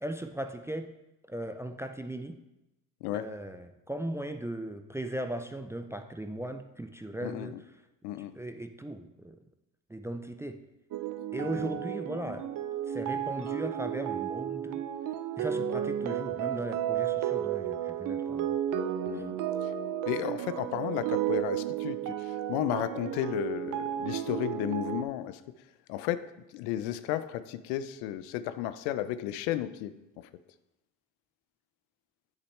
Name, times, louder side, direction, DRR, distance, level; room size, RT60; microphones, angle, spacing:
voice 1, 0.0-0.9 1.3-2.4 3.1-7.5 8.4-9.4 9.9-10.6 11.3-12.5 12.9-14.8 15.4-18.6 19.1-19.2, right 1 dB, 5° right, 7 dB, 0.3 m, -37 dB
voice 2, 7.2-7.6 8.0-8.3 11.6-11.7 19.1-19.7 20.1-25.4 25.9-30.3, left 12 dB, 80° left, 14 dB, 0.5 m, -34 dB
sound 1, 10.9-25.0, right 10 dB, 50° right, 0.6 m, -33 dB
8.1 x 6.6 x 3.2 m, 0.94 s
supercardioid pair, 75°, 41 cm